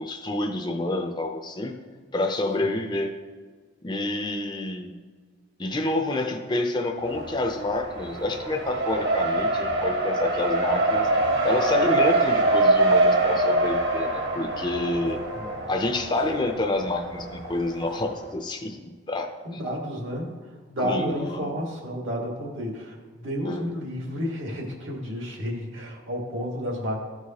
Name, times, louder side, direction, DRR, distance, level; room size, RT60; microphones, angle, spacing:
voice 1, 0.0-1.7 2.1-3.1 3.8-4.9 5.6-11.1 11.4-15.2 15.7-18.8 19.1-19.6 20.8-21.6 23.4-23.7, left 2 dB, 20° left, 5 dB, 0.5 m, -28 dB
Race car auto racing, 7.0-18.0, right 2 dB, 60° right, 1.2 m, -24 dB
voice 2, 19.4-20.3 20.7-27.0, equal, 75° right, 0 dB, 1.5 m, -31 dB
13.0 x 4.7 x 2.8 m, 1.5 s
head